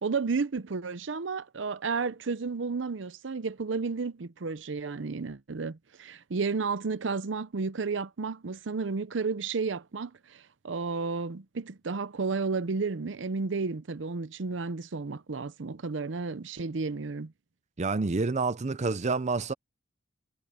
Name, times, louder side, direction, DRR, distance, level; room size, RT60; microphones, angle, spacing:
voice 1, 0.0-17.3, right 4 dB, 80° right, 0.7 m, -32 dB
voice 2, 17.8-19.5, right 3 dB, 40° right, 0.6 m, -28 dB
head